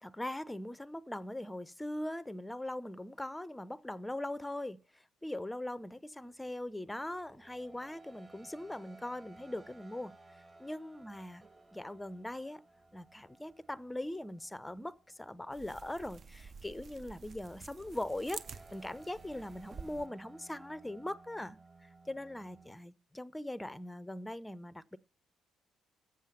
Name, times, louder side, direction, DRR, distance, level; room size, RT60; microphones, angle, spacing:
voice 1, 0.0-10.1 10.6-12.6 12.9-21.6 21.8-25.0, left 1 dB, 10° left, 0.6 m, -41 dB
sound 1, 6.3-22.8, right 2 dB, 30° right, 2.2 m, -59 dB
sound 2, 15.5-20.1, right 5 dB, 45° right, 0.6 m, -50 dB
7.6 x 7.3 x 7.1 m
hypercardioid pair, 45°, 0 cm